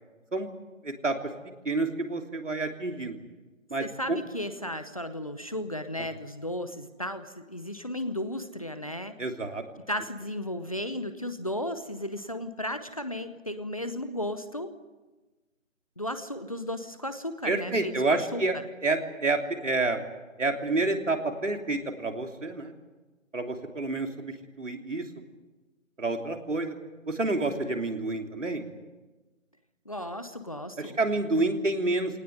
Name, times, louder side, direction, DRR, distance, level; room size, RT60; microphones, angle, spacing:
voice 1, 0.8-1.1 1.6-3.2 3.7-4.2 9.2-9.6 17.4-18.6 18.8-20.0 20.4-22.7 23.3-25.0 26.0-26.7 27.1-28.7 30.8-32.2, right 2 dB, 65° right, 4 dB, 3.2 m, -29 dB
voice 2, 3.8-9.1 9.9-14.7 16.0-18.6 29.9-31.0, left 1 dB, 25° left, 10 dB, 0.9 m, -35 dB
21.5 x 19.0 x 9.6 m, 1.2 s
figure-of-eight pair, 165°, 39 cm